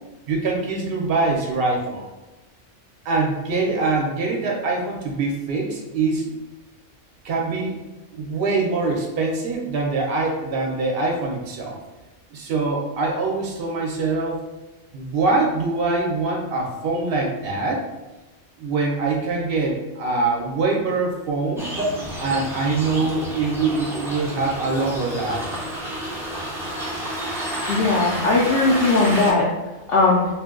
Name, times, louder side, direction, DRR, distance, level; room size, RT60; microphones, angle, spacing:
voice 1, 0.3-2.0 3.0-6.3 7.2-7.8 8.1-11.8 12.3-14.4 14.9-17.9 18.6-21.7 22.2-25.5, right 3 dB, 55° right, 0 dB, 0.8 m, -24 dB
sound 1, 21.6-29.3, equal, 5° right, 0.4 m, -30 dB
voice 2, 27.7-29.5 29.9-30.2, left 3 dB, 65° left, -4 dB, 0.7 m, -18 dB
2.5 x 2.2 x 3.5 m, 1.1 s
omnidirectional pair, 1.2 m